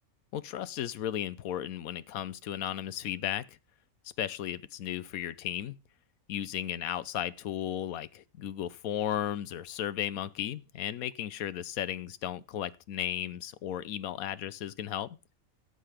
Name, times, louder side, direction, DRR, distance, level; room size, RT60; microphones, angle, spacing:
voice 1, 0.3-3.6 4.2-5.8 6.3-15.2, left 11 dB, 90° left, 1.2 m, -35 dB
13.5 x 7.9 x 5.0 m
omnidirectional pair, 1.4 m